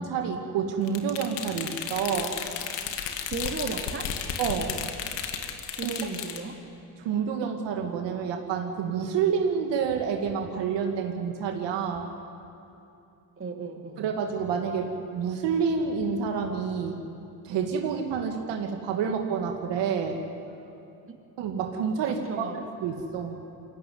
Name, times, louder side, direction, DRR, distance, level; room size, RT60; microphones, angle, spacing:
voice 1, 0.0-2.4 4.4-4.8 5.8-5.9 7.0-12.1 14.0-17.0 17.4-20.2 20.5-20.7 21.4-22.5 22.8-23.4, right 6 dB, 70° right, 3 dB, 2.2 m, -28 dB
sound 1, 0.9-6.4, left 8 dB, 70° left, 2.1 m, -34 dB
voice 2, 3.3-4.1 5.8-6.6 13.4-14.0 21.1-21.2 22.0-22.6, right 4 dB, 30° right, 3 dB, 2.7 m, -35 dB
22.0 x 16.5 x 9.6 m, 2.8 s
supercardioid pair, 85°, 44 cm